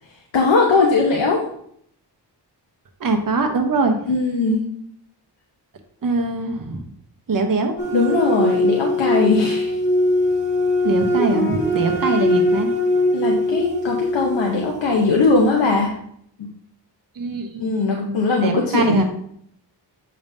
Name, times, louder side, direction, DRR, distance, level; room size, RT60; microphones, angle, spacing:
voice 1, 0.3-1.4 4.1-4.6 7.9-9.8 13.1-16.0 17.6-19.0, left 3 dB, 85° left, -1 dB, 1.0 m, -19 dB
voice 2, 3.0-4.0 6.0-6.8 7.3-7.7 10.8-12.7 17.2-19.0, right 3 dB, 50° right, 4 dB, 1.0 m, -22 dB
sound 1, 7.8-15.3, left 1 dB, 25° left, 1.5 m, -21 dB
7.7 x 5.3 x 2.7 m, 0.68 s
wide cardioid pair, 80°, 43 cm